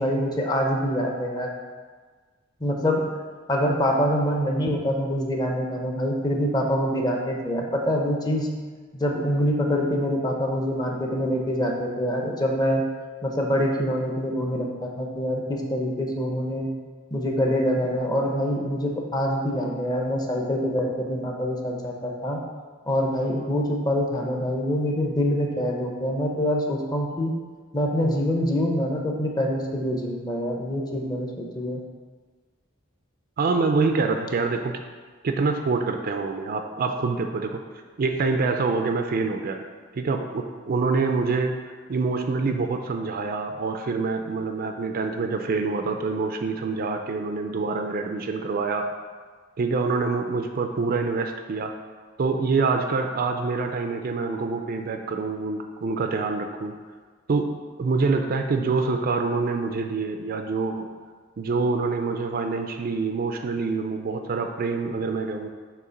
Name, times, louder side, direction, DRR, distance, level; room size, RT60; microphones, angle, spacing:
voice 1, 0.0-1.5 2.6-3.0 3.5-8.5 8.9-12.9 13.2-16.7 17.1-22.4 22.9-27.3 27.7-31.8, equal, 20° left, 1 dB, 0.7 m, -25 dB
voice 2, 33.4-34.7 35.2-37.6 38.0-39.6 39.9-48.8 49.6-51.7 52.2-56.7 57.3-57.5 57.8-60.9 61.4-65.5, right 4 dB, 45° right, 5 dB, 0.4 m, -26 dB
6.8 x 2.9 x 5.1 m, 1.5 s
head